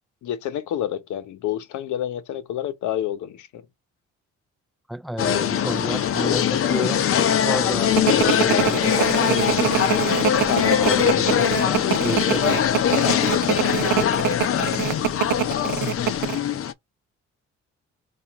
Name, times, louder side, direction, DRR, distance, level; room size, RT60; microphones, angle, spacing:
voice 1, 0.2-3.7 10.5-11.1 13.0-14.4, left 11 dB, 75° left, 0.8 m, -29 dB
voice 2, 4.9-7.0 7.4-9.8 10.4-12.6, right 1 dB, ahead, 0.4 m, -32 dB
sound 1, 5.2-16.7, left 9 dB, 45° left, 0.6 m, -21 dB
sound 2, 8.0-16.4, right 14 dB, 85° right, 0.6 m, -25 dB
4.7 x 2.5 x 2.9 m
cardioid pair, 90°, 30 cm